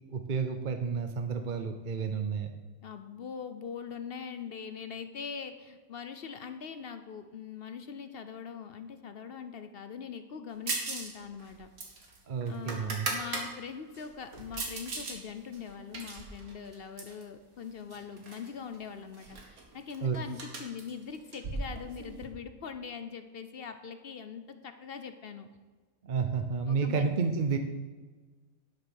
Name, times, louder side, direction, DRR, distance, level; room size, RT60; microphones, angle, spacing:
voice 1, 0.1-2.5 12.3-13.1 20.0-20.2 26.0-27.6, right 5 dB, 45° right, 7 dB, 0.6 m, -30 dB
voice 2, 2.8-11.7 12.5-25.5 26.7-27.2, left 6 dB, 50° left, 9 dB, 0.7 m, -42 dB
sound 1, 10.7-11.1 11.4-13.5 13.9-15.2 15.5-17.2 17.9-18.5 18.7-18.8 19.1-22.3, right 3 dB, 70° right, 2.1 m, -38 dB
11.5 x 6.6 x 6.4 m, 1.3 s
omnidirectional pair, 1.5 m